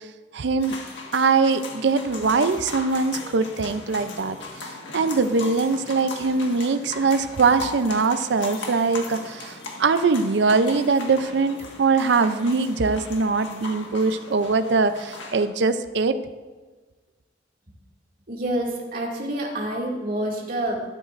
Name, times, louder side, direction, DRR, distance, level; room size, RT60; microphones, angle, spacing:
voice 1, 0.3-0.7 1.1-4.4 4.9-16.2, right 4 dB, 70° right, 11 dB, 0.5 m, -22 dB
sound 1, 0.6-15.5, left 3 dB, 80° left, 1.6 m, -38 dB
voice 2, 18.3-20.8, right 1 dB, 50° right, -3 dB, 2.3 m, -27 dB
13.0 x 11.0 x 2.5 m, 1.3 s
head